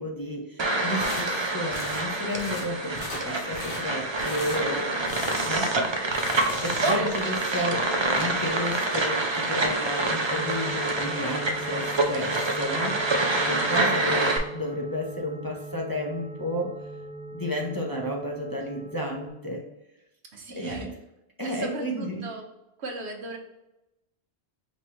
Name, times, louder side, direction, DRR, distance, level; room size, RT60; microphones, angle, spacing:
voice 1, 0.0-5.7 6.6-7.9 8.1-13.0 13.3-16.7 17.3-19.6 20.6-20.9 21.4-22.3, left 1 dB, 25° left, -2 dB, 0.6 m, -32 dB
sound 1, 0.6-14.4, right 2 dB, 35° right, 0.5 m, -27 dB
sound 2, 1.0-1.3 1.7-2.1 2.3-2.7 2.9-3.2 3.5-3.8 4.2-4.6 5.0-5.8 6.0-7.2, left 2 dB, 55° left, 1.0 m, -37 dB
voice 2, 5.4-6.0 6.9-7.2 13.5-14.0 20.3-20.9 21.4-22.4 22.8-23.4, right 2 dB, 80° right, 1 dB, 1.2 m, -39 dB
sound 3, 10.3-19.3, right 1 dB, 40° left, 1.2 m, -39 dB
5.2 x 2.9 x 3.1 m, 0.91 s
omnidirectional pair, 1.1 m